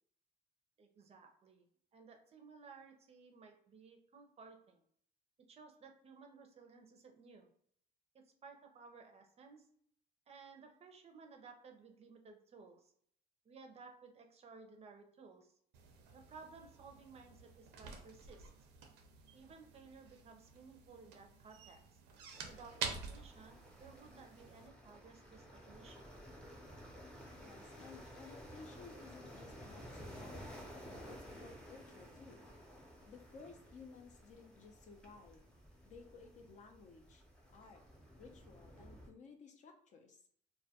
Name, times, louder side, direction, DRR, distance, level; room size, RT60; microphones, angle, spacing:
voice 1, 0.8-1.7 1.9-4.8 5.5-7.5 8.4-9.8 10.3-12.9 13.4-15.5 16.1-18.5 19.3-22.0 22.5-26.2, right 4 dB, 35° right, 4 dB, 0.5 m, -57 dB
sound 1, 15.7-24.7, right 5 dB, 90° right, 0.5 m, -49 dB
sound 2, 22.3-39.1, equal, 5° left, 0.6 m, -54 dB
voice 2, 27.3-30.7 31.1-32.5 33.1-35.5 35.8-37.2 37.5-37.8 38.2-40.2, left 4 dB, 45° left, 4 dB, 0.5 m, -57 dB
2.2 x 2.1 x 2.7 m, 0.62 s
cardioid pair, 110°, 17 cm